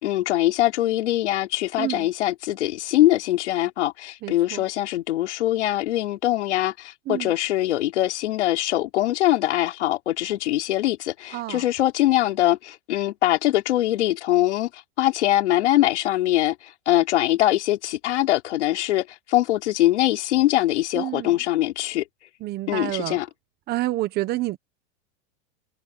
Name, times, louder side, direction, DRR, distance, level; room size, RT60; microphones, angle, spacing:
voice 1, 0.0-14.7 15.0-22.0 22.7-23.3, left 14 dB, 80° left, 4.4 m, -22 dB
voice 2, 1.8-2.1 4.2-4.6 7.1-7.3 11.3-11.6 20.9-21.4 22.4-23.2 23.7-24.6, right 17 dB, 30° right, 1.1 m, -28 dB
supercardioid pair, 155°, 34 cm